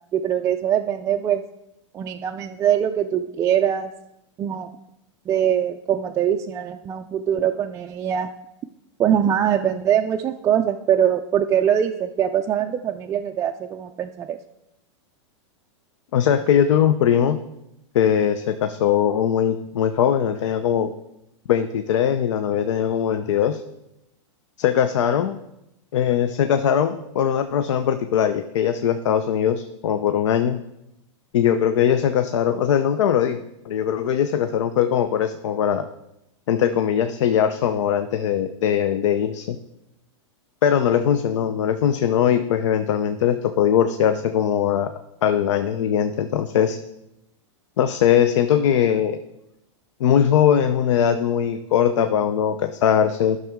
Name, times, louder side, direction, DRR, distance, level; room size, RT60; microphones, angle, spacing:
voice 1, 0.1-1.4 1.9-3.9 4.4-4.7 5.3-8.3 9.0-14.4, right 9 dB, 20° right, 2 dB, 0.3 m, -22 dB
voice 2, 16.1-17.4 17.9-20.9 21.5-23.6 24.6-25.4 25.9-30.6 31.3-35.9 36.5-39.6 40.6-44.9 45.2-46.8 47.8-49.2 50.0-53.4, left 9 dB, 75° left, 9 dB, 0.6 m, -20 dB
12.0 x 6.2 x 3.6 m, 0.86 s
hypercardioid pair, 135°, 16 cm